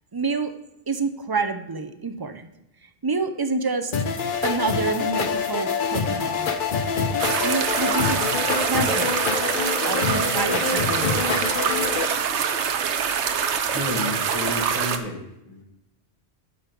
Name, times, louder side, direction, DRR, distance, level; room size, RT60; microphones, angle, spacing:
voice 1, 0.1-0.5 0.9-2.5 3.0-3.9 4.4-6.5 7.4-8.2 8.6-9.2 9.9-11.6, right 4 dB, 30° right, 9 dB, 0.5 m, -28 dB
sound 1, 3.9-12.1, left 5 dB, 55° left, 0.9 m, -26 dB
sound 2, 7.2-15.0, right 7 dB, 90° right, 1.0 m, -25 dB
voice 2, 13.7-15.6, left 1 dB, 30° left, -2 dB, 1.6 m, -31 dB
10.0 x 5.3 x 5.9 m, 0.88 s
omnidirectional pair, 1.1 m